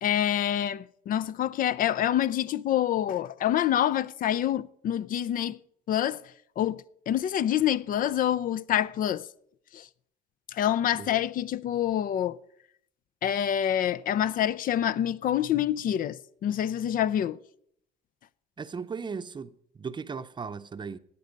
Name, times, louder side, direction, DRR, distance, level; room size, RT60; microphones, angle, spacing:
voice 1, 0.0-5.6 5.9-6.2 6.6-9.3 9.7-9.9 10.5-12.4 13.2-17.4, left 11 dB, 55° left, 0.5 m, -27 dB
voice 2, 18.6-21.0, right 5 dB, 25° right, 0.7 m, -37 dB
17.0 x 9.7 x 5.3 m
cardioid pair, 110°, 17 cm